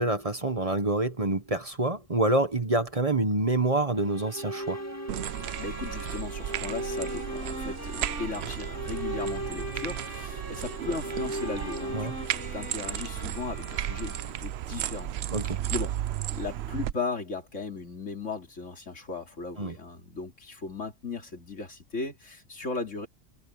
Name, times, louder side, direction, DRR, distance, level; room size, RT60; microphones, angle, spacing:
voice 1, 0.0-4.8 11.9-12.1 15.3-15.6 19.6-19.8, right 2 dB, 30° right, 1.3 m, -27 dB
sound 1, 3.9-14.1, right 1 dB, 10° left, 2.3 m, -38 dB
sound 2, 5.1-16.9, right 12 dB, 65° right, 0.8 m, -34 dB
sound 3, 5.2-14.6, equal, 85° right, 6.9 m, -44 dB
voice 2, 5.6-15.1 15.4-23.1, left 4 dB, 80° left, 3.6 m, -37 dB
omnidirectional pair, 1.2 m